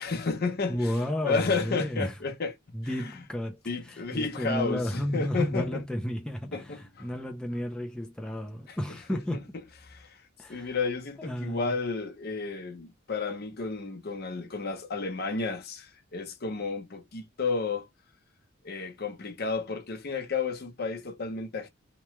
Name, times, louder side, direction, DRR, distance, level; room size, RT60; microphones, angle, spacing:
voice 1, 0.0-0.9 1.2-2.5 3.0-3.1 3.7-5.7 6.5-7.1 8.7-8.8 9.1-9.2 9.9-10.2 10.5-17.9 18.6-21.7, left 4 dB, 50° left, 0.7 m, -32 dB
voice 2, 0.7-2.1 2.7-9.5 10.4-10.8 11.2-11.7, equal, 5° left, 0.4 m, -32 dB
3.0 x 2.2 x 3.0 m
head